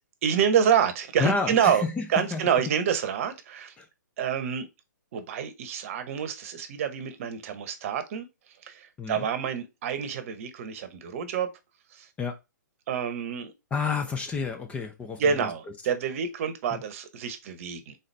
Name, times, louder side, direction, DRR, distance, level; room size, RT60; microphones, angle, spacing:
voice 1, 0.2-3.7 4.2-4.7 5.1-8.3 8.6-11.5 11.9-12.1 12.9-13.5 15.2-18.0, right 8 dB, 45° right, 0.9 m, -27 dB
voice 2, 1.2-1.9 2.2-2.4 3.8-3.9 9.0-9.2 12.2-12.4 13.7-15.2, left 5 dB, 10° left, 0.5 m, -29 dB
4.0 x 3.9 x 3.2 m
hypercardioid pair, 130°, 10 cm